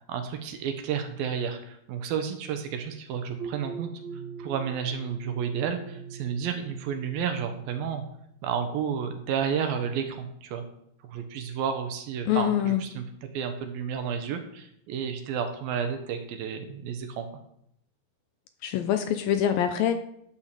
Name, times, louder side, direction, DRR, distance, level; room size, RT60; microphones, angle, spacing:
voice 1, 0.1-3.9 4.4-8.1 8.4-10.6 11.0-17.3, right 7 dB, 75° right, 7 dB, 2.7 m, -31 dB
sound 1, 3.4-8.6, right 6 dB, 50° right, 2.8 m, -42 dB
voice 2, 12.3-12.8 18.6-19.9, left 10 dB, 80° left, 8 dB, 2.3 m, -24 dB
11.5 x 5.7 x 6.7 m, 0.73 s
omnidirectional pair, 4.5 m